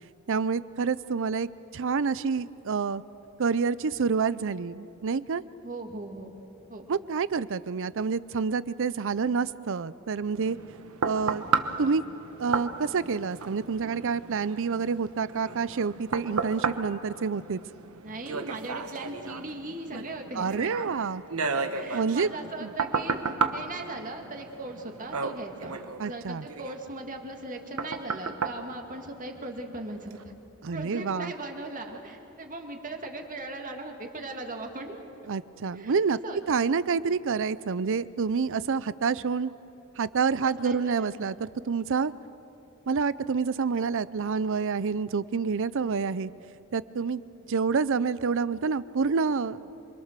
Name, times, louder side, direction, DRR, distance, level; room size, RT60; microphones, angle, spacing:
voice 1, 0.3-1.5 1.7-3.0 3.4-5.4 6.9-10.6 11.0-11.4 11.8-12.0 12.4-17.6 20.4-21.2 21.9-22.3 22.6-22.7 26.0-26.4 30.6-31.3 35.3-36.2 36.5-39.5 40.0-42.1 42.9-46.3 46.7-47.2 47.5-49.6, right 5 dB, 60° right, 17 dB, 0.5 m, -28 dB
voice 2, 5.6-6.4 6.7-6.9 18.0-20.7 21.5-30.3 30.7-35.0 35.7-36.0 36.2-36.4 40.4-41.2, right 2 dB, 40° right, 3 dB, 2.2 m, -39 dB
sound 1, 10.3-29.6 30.1-30.2, right 4 dB, 90° right, 1.2 m, -34 dB
27.0 x 24.5 x 6.7 m, 2.9 s
head